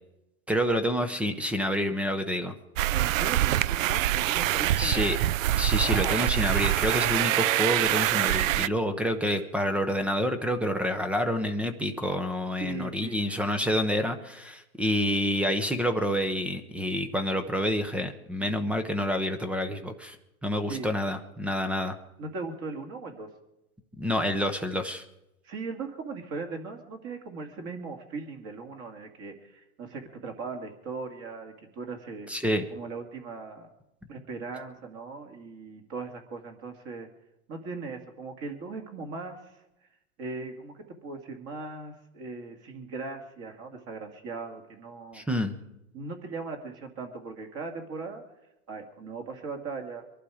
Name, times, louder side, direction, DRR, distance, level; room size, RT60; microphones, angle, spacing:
voice 1, 0.5-2.5 4.8-5.2 5.5-20.2 20.4-22.0 24.0-25.0 32.3-32.7 45.1-45.5, equal, 5° right, 9 dB, 0.5 m, -28 dB
sound 1, 2.8-8.7, right 14 dB, 65° right, 0.5 m, -25 dB
voice 2, 2.9-5.3 5.8-6.2 12.6-13.4 20.7-20.9 22.2-23.3 25.4-32.3 32.7-33.7 34.1-37.1 37.5-39.6 40.2-45.2 45.9-48.2 48.7-50.1, right 4 dB, 35° right, 4 dB, 2.1 m, -39 dB
23.5 x 11.5 x 4.8 m, 0.90 s
hypercardioid pair, 145°, 43 cm